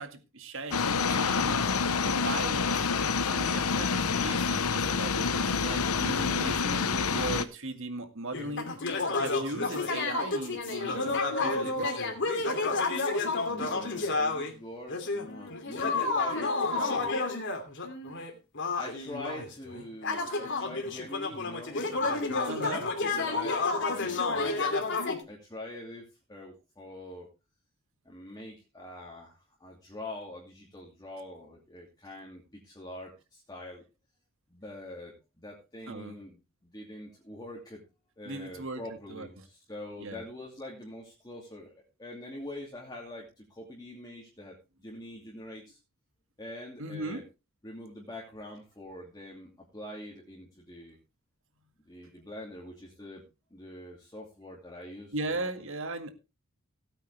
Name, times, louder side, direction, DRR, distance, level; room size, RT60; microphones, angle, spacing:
voice 1, 0.0-1.6 2.0-2.9 3.3-8.7 9.2-12.1 22.5-22.9 35.9-36.2 38.3-38.8 39.1-39.4 40.0-40.2 46.8-47.2 55.1-56.1, right 2 dB, 60° right, 8 dB, 1.9 m, -38 dB
sound 1, 0.7-7.4, left 5 dB, 85° left, 1.0 m, -27 dB
sound 2, 8.3-14.6 14.9-25.2, left 3 dB, 55° left, 2.8 m, -30 dB
voice 2, 13.5-17.3 18.8-22.6 23.0-24.6 25.3-27.3 28.0-33.8 34.5-37.8 38.2-41.7 42.0-45.8 46.4-47.2 47.6-51.0 51.9-53.2 53.5-55.5, left 1 dB, 20° left, -3 dB, 2.6 m, -44 dB
17.0 x 9.0 x 3.4 m, 0.28 s
head